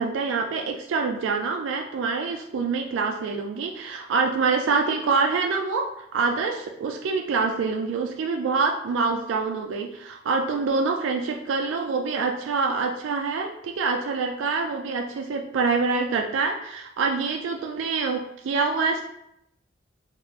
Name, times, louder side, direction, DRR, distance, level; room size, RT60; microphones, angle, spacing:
voice 1, 0.0-19.0, right 4 dB, 85° right, 2 dB, 0.3 m, -26 dB
3.0 x 2.5 x 2.8 m, 0.77 s
head